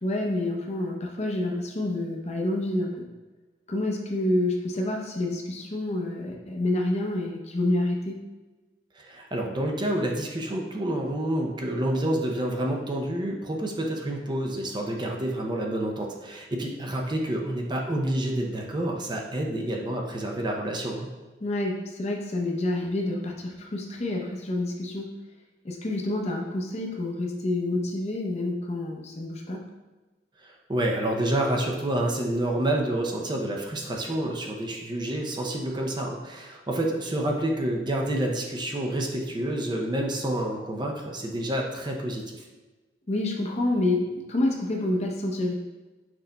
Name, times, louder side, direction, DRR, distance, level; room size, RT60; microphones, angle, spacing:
voice 1, 0.0-3.1 3.7-8.2 21.4-25.1 25.6-29.6 43.1-45.5, left 1 dB, 40° left, 0 dB, 0.7 m, -28 dB
voice 2, 8.9-21.1 30.4-42.5, right 1 dB, 25° right, 1 dB, 0.5 m, -28 dB
5.9 x 4.0 x 2.2 m, 1.2 s
head